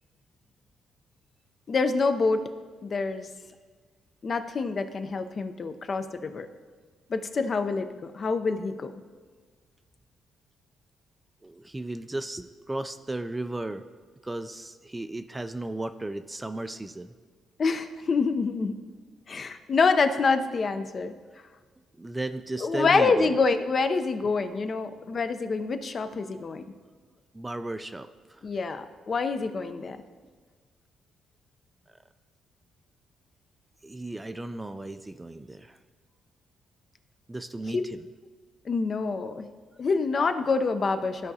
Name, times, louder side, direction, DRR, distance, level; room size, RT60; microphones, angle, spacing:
voice 1, 1.7-2.4 2.8-3.3 4.2-6.5 7.1-8.9 17.6-18.7 19.3-21.1 22.6-26.6 28.4-30.0 37.7-37.9 38.6-39.5 39.8-41.3, left 4 dB, 45° left, 9 dB, 0.5 m, -26 dB
voice 2, 11.4-13.8 14.2-17.1 22.0-23.3 27.3-28.4 33.8-35.8 37.3-38.1, right 2 dB, 15° right, 9 dB, 0.3 m, -35 dB
14.0 x 4.8 x 2.7 m, 1.5 s
cardioid pair, 90°, 0 cm